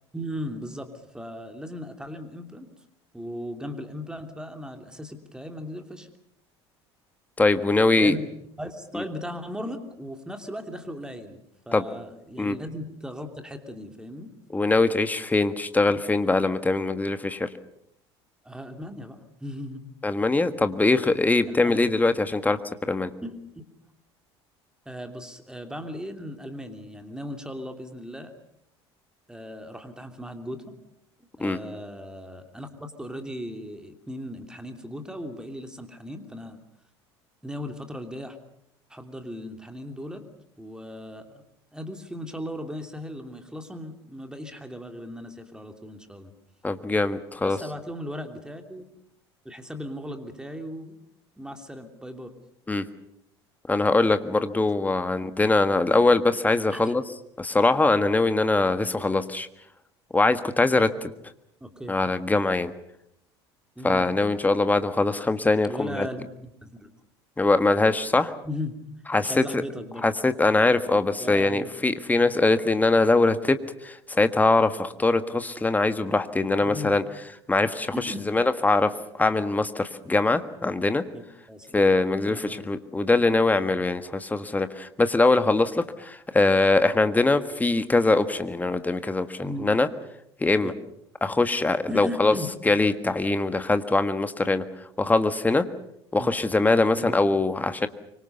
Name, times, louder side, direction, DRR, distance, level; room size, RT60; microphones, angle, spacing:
voice 1, 0.1-0.9 1.1-2.7 3.1-6.1 8.0-8.2 8.6-11.4 11.7-14.3 18.4-19.8 21.5-21.9 23.2-23.6 24.8-28.3 29.3-30.8 31.4-36.6 37.4-38.4 38.9-40.2 40.6-41.4 41.7-46.3 47.4-48.8 49.4-51.0 51.4-52.3 56.7-56.9 61.6-62.0 63.8-64.1 65.7-66.9 68.4-68.8 69.2-70.0 71.2-71.7 76.6-76.9 77.9-78.3 81.1-81.9 82.3-82.7 89.4-89.7 90.6-90.8 91.9-92.5 96.2-96.3 97.0-97.2, equal, 5° right, 6 dB, 2.9 m, -37 dB
voice 2, 7.4-8.2 9.0-9.1 11.7-11.8 12.4-12.6 14.5-17.5 20.0-22.6 22.9-23.1 31.4-31.6 46.6-47.6 52.7-52.9 53.7-57.0 57.4-59.5 60.1-61.1 61.9-62.7 63.8-66.1 67.4-68.3 69.1-69.6 70.0-73.6 73.8-77.0 77.5-78.9 79.2-81.0 81.7-89.9 90.4-90.7 91.2-92.3 92.7-94.6 95.0-95.6 96.1-97.9, left 3 dB, 10° left, 10 dB, 1.6 m, -22 dB
25.0 x 25.0 x 6.9 m, 0.76 s
figure-of-eight pair, 70°, 14 cm